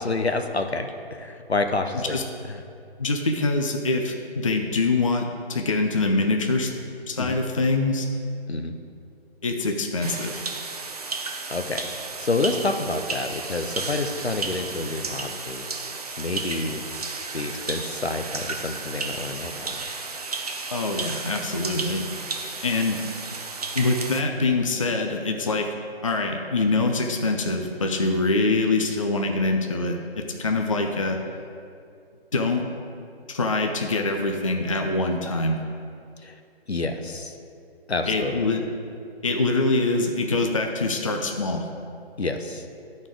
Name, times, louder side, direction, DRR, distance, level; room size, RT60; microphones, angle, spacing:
voice 1, 0.0-2.2 2.5-2.6 7.2-7.4 8.5-8.8 11.5-11.9 12.2-15.9 16.2-16.8 17.3-19.8 36.2-36.4 36.7-37.4 37.9-38.5 42.2-42.7, left 3 dB, 85° left, 6 dB, 0.8 m, -28 dB
voice 2, 3.0-6.7 7.1-8.1 9.4-10.4 20.7-22.0 22.6-23.0 23.7-25.7 26.0-31.2 32.3-32.6 33.3-35.6 38.1-38.6 39.2-41.7, left 3 dB, 35° left, 4 dB, 0.4 m, -24 dB
sound 1, 10.0-24.2, right 4 dB, 40° right, 0.5 m, -33 dB
11.0 x 4.3 x 4.8 m, 2.5 s
figure-of-eight pair, 145°, 31 cm